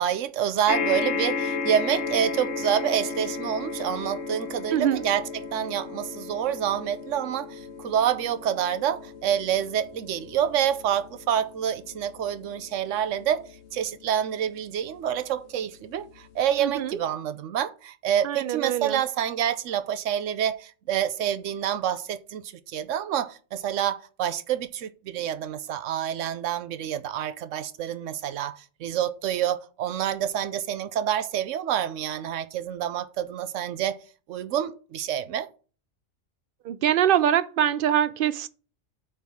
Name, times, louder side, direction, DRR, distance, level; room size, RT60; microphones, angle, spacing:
voice 1, 0.0-13.4 13.7-34.0 34.3-35.5, right 9 dB, 80° right, 1.0 m, -27 dB
sound 1, 0.7-15.2 16.0-16.1 16.3-16.4, left 5 dB, 65° left, 1.0 m, -34 dB
voice 2, 4.7-5.0 16.6-17.0 18.2-19.0 36.6-38.5, right 10 dB, 60° right, 0.6 m, -24 dB
8.5 x 3.6 x 6.1 m
omnidirectional pair, 1.3 m